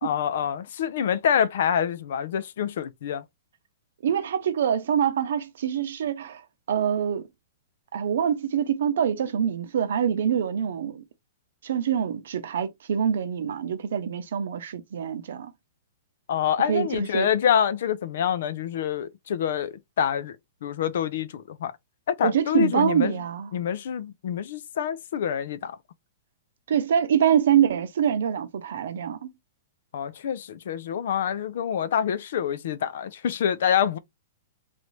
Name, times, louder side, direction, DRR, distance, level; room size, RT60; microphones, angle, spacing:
voice 1, 0.0-3.2 16.3-20.4 20.6-21.8 22.1-23.2 23.5-25.8 29.9-34.0, left 8 dB, 60° left, 0.5 m, -26 dB
voice 2, 4.0-6.4 6.7-7.3 7.9-11.0 11.6-15.5 16.7-17.3 22.2-23.5 26.7-29.3, right 8 dB, 70° right, 0.7 m, -25 dB
3.2 x 2.6 x 3.1 m
hypercardioid pair, 170°, 0 cm